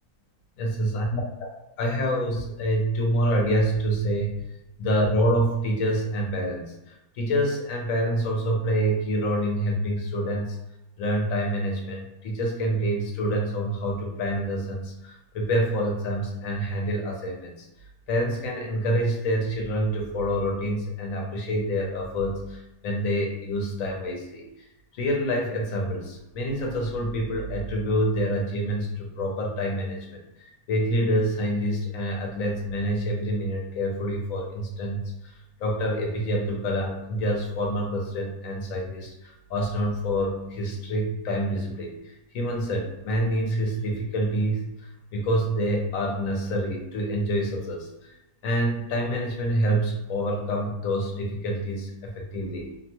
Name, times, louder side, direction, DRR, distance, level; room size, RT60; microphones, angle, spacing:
voice 1, 0.6-1.5 1.8-4.4 4.8-10.6 11.0-17.7 18.1-24.4 24.9-35.3 35.6-48.1 48.4-52.7, equal, 65° left, 0 dB, 0.9 m, -27 dB
2.7 x 2.1 x 2.8 m, 0.91 s
omnidirectional pair, 1.7 m